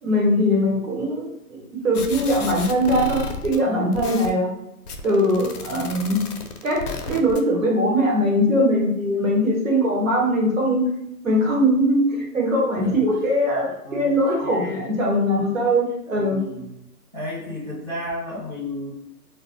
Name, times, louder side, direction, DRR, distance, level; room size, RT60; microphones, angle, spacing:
voice 1, 0.0-4.5 5.0-6.2 6.6-10.8 11.2-16.4, equal, 55° right, -3 dB, 1.0 m, -21 dB
sound 1, 1.9-3.6 3.9-4.3 4.9-7.4, left 3 dB, 70° left, 0.5 m, -33 dB
voice 2, 14.4-14.9 16.2-16.7 17.1-18.9, left 1 dB, 30° right, -13 dB, 0.5 m, -33 dB
2.1 x 2.1 x 2.9 m, 0.83 s
hypercardioid pair, 175°, 49 cm